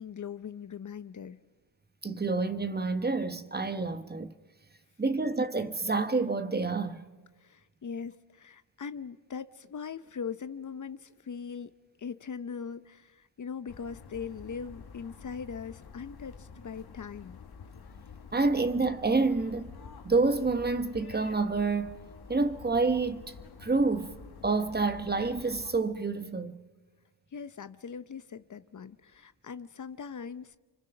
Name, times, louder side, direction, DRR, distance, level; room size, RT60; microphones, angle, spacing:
voice 1, 0.0-1.4 7.4-11.7 12.0-17.4 27.3-30.6, left 6 dB, 45° left, 0.8 m, -40 dB
voice 2, 2.0-4.3 5.0-7.0 18.3-19.7 20.0-22.0 22.3-23.2 23.6-24.1 24.4-26.6, right 3 dB, 25° right, 1.2 m, -28 dB
sound 1, 13.7-25.8, left 5 dB, 65° left, 1.8 m, -49 dB
29.0 x 25.0 x 6.0 m
cardioid pair, 85°, 41 cm